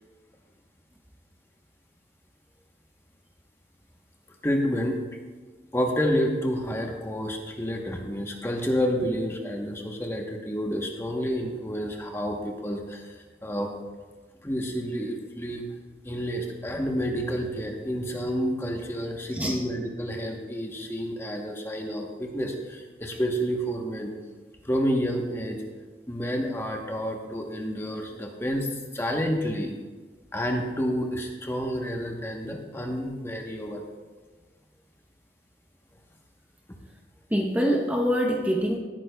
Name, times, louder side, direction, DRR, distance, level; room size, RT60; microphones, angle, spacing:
voice 1, 4.4-5.0 5.7-13.7 14.4-15.7 16.0-24.1 24.6-25.6 26.1-29.7 30.3-33.8, equal, 15° left, 1 dB, 1.0 m, -29 dB
voice 2, 37.3-38.8, equal, 10° right, 0 dB, 0.8 m, -24 dB
17.0 x 9.2 x 2.3 m, 1.4 s
head